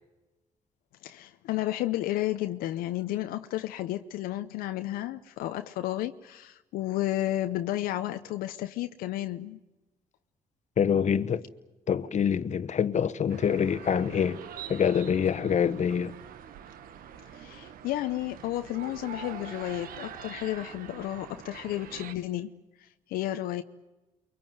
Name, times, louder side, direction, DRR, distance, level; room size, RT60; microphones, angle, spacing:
voice 1, 1.0-9.6 17.3-22.5 22.8-23.6, left 14 dB, 80° left, 0.8 m, -32 dB
voice 2, 10.8-11.4 11.9-14.4 14.7-16.1, left 7 dB, 55° left, 1.2 m, -25 dB
sound 1, 13.3-22.1, right 8 dB, 75° right, 1.4 m, -44 dB
23.5 x 23.0 x 9.4 m
supercardioid pair, 55°, 15 cm